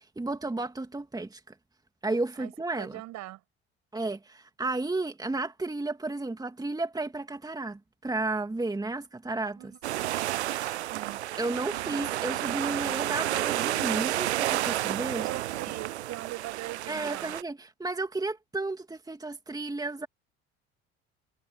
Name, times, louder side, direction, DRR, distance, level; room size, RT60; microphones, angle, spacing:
voice 1, 0.0-1.5 2.0-3.0 3.9-9.6 11.4-15.3 16.9-20.1, right 2 dB, 10° right, 2.5 m, -33 dB
voice 2, 2.4-3.4 9.6-10.1 10.9-11.2 15.1-17.4, right 17 dB, 55° right, 7.0 m, -41 dB
sound 1, 9.8-17.4, right 14 dB, 75° right, 0.9 m, -31 dB
figure-of-eight pair, 60°, 33 cm